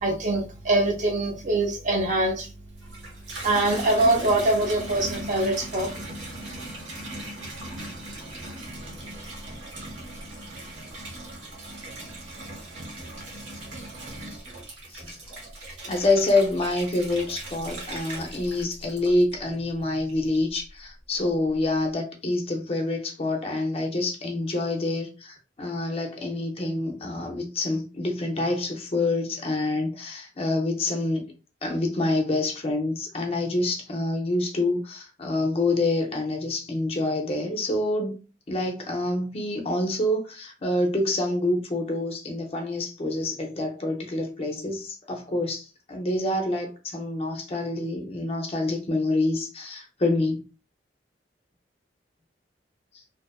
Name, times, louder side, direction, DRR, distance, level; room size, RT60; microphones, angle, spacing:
voice 1, 0.0-2.5 3.4-5.9, right 2 dB, 40° right, 0.5 m, -23 dB
Water tap faucet / Bathtub (filling or washing), 2.7-19.6 20.1-20.7, right 1 dB, 80° right, 0.9 m, -39 dB
voice 2, 15.8-31.3 31.6-38.2 38.5-50.4, left 2 dB, 30° left, 0.4 m, -27 dB
2.5 x 2.3 x 2.2 m
head